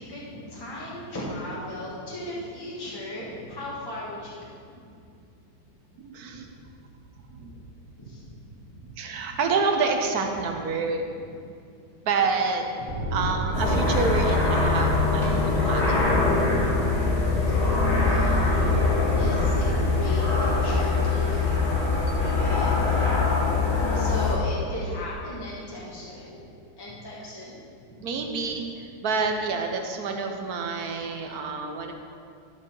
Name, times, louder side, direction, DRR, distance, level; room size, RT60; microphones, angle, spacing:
voice 1, 0.0-4.5 6.2-6.5 7.3-7.6 8.0-8.2 8.7-8.8 9.1-9.2 11.1-11.2 12.8-12.9 17.2-21.7 22.1-23.2 23.9-26.5 26.8-27.6 28.0-28.3, left 1 dB, 15° left, -7 dB, 1.4 m, -37 dB
voice 2, 6.0-6.5 7.3-7.5 9.0-11.0 12.0-12.7 13.1-16.1 22.1-22.2 28.0-31.9, right 4 dB, 65° right, 4 dB, 1.3 m, -28 dB
sound 1, 12.9-20.1, equal, 40° right, 2.1 m, -31 dB
sound 2, 13.5-24.4, left 3 dB, 65° left, 2.5 m, -23 dB
11.5 x 5.3 x 5.4 m, 2.4 s
omnidirectional pair, 1.8 m